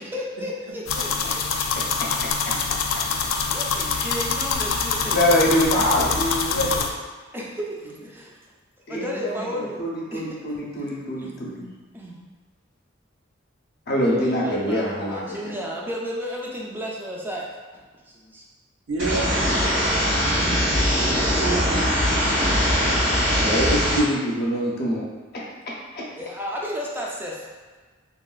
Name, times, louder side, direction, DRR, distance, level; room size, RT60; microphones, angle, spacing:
voice 1, 0.0-2.0 3.5-5.2 7.3-8.4 8.9-9.8 10.1-10.3 11.1-11.5 11.9-12.2 13.9-17.5 18.1-18.4 26.2-27.5, equal, 10° right, -3 dB, 0.4 m, -33 dB
sound 1, 0.9-6.9, left 5 dB, 85° left, 0.3 m, -25 dB
voice 2, 5.1-6.8 8.9-11.7 13.9-15.5 23.3-25.0 25.3-25.4 25.9-26.0, equal, 50° left, -4 dB, 0.6 m, -24 dB
voice 3, 18.9-19.5 19.8-23.1, right 2 dB, 70° right, -3 dB, 0.6 m, -32 dB
sound 2, 19.0-24.0, equal, 90° right, 1.4 m, -21 dB
3.1 x 2.3 x 2.4 m, 1.4 s
head